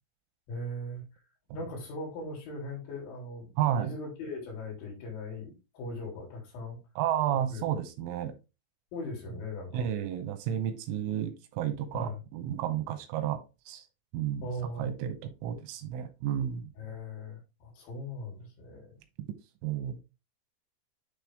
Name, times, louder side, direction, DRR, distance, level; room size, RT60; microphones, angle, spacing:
voice 1, 0.5-1.1 1.5-3.5 3.7-6.8 7.3-7.7 8.9-9.9 11.9-12.2 14.4-14.9 16.8-19.0, left 1 dB, 75° left, -2 dB, 5.3 m, -39 dB
voice 2, 3.6-3.9 7.0-8.3 9.7-13.8 14.1-14.5 14.8-16.7 19.6-20.0, right 10 dB, 90° right, 8 dB, 3.4 m, -32 dB
10.0 x 3.4 x 3.5 m, 0.27 s
omnidirectional pair, 5.4 m